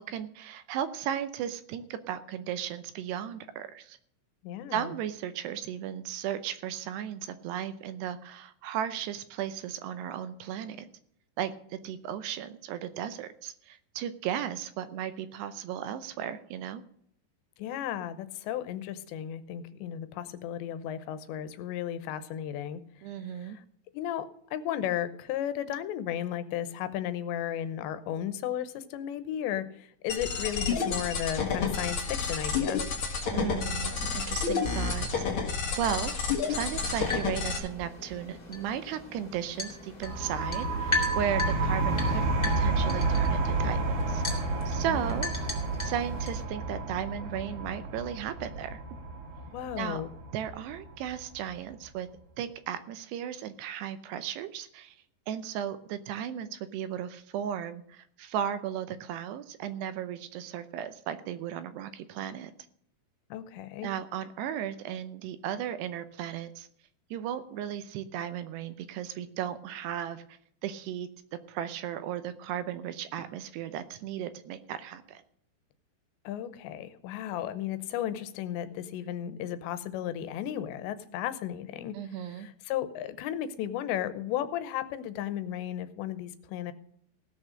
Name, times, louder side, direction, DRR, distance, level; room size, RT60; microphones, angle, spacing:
voice 1, 0.0-4.0 4.7-10.9 11.4-16.8 23.0-23.6 33.3-36.2 36.5-44.2 44.7-45.3 45.8-48.8 49.8-50.0 50.3-52.1 52.4-55.0 55.3-62.5 63.8-66.7 67.1-71.1 71.5-75.2 81.9-82.5, right 10 dB, 80° right, 12 dB, 2.7 m, -35 dB
voice 2, 4.4-4.9 17.6-22.8 23.3-23.6 23.9-32.8 44.9-45.2 49.5-50.1 63.3-63.9 76.2-86.7, left 11 dB, 85° left, 12 dB, 3.0 m, -34 dB
sound 1, 30.1-37.6, left 5 dB, 50° left, 1.7 m, -30 dB
sound 2, 36.7-46.4, left 3 dB, 25° left, 0.9 m, -38 dB
sound 3, 40.0-51.4, right 3 dB, 55° right, 2.8 m, -30 dB
17.0 x 6.4 x 6.4 m, 0.68 s
omnidirectional pair, 5.1 m